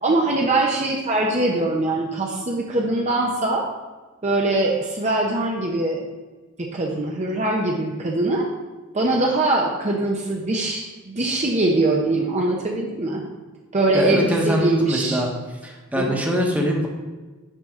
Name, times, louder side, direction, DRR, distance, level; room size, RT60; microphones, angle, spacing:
voice 1, 0.0-3.7 4.2-6.0 6.6-8.5 8.9-13.2 13.7-15.2 16.0-16.2, right 2 dB, 35° right, -1 dB, 0.8 m, -22 dB
voice 2, 13.9-15.3 15.6-16.9, equal, 5° right, -1 dB, 1.2 m, -23 dB
9.2 x 5.8 x 3.7 m, 1.3 s
head